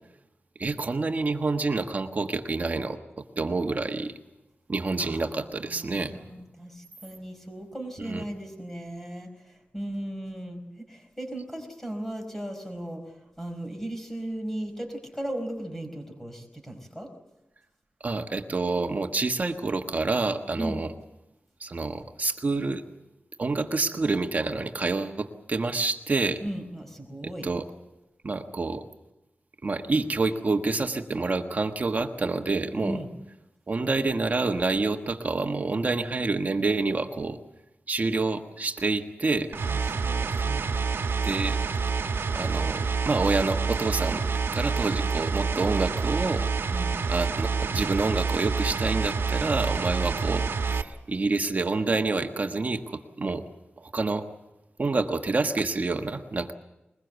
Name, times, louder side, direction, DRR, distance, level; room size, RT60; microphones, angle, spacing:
voice 1, 0.6-3.0 3.4-4.1 4.7-6.2 8.0-8.2 18.0-20.9 21.6-22.8 23.4-26.4 27.4-27.6 28.2-28.8 29.6-33.0 33.7-37.4 37.9-39.5 41.2-41.6 42.3-44.2 44.5-46.5 47.1-53.4 53.8-54.3 54.8-56.5, right 3 dB, 40° right, 6 dB, 1.3 m, -27 dB
voice 2, 5.0-17.1 20.6-20.8 26.4-27.5 32.8-33.1 39.7-40.7 46.7-47.0 50.1-50.2, right 1 dB, 5° left, 5 dB, 4.7 m, -37 dB
sound 1, 39.5-50.8, right 5 dB, 75° right, 1.3 m, -27 dB
21.5 x 21.0 x 8.1 m, 0.96 s
wide cardioid pair, 130°, 4 cm